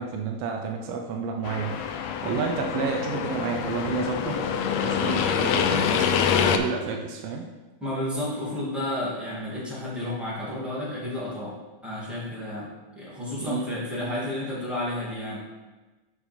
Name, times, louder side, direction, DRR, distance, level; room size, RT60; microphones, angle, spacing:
voice 1, 0.0-4.4 4.8-5.8 6.4-7.4 13.4-13.6 14.0-14.2, right 5 dB, 80° right, 2 dB, 1.4 m, -30 dB
sound 1, 1.4-6.6, left 7 dB, 85° left, 1.5 m, -25 dB
voice 2, 7.8-11.6 11.8-12.7 12.9-15.4, left 1 dB, ahead, -8 dB, 1.5 m, -31 dB
7.1 x 5.1 x 4.4 m, 1.2 s
omnidirectional pair, 3.6 m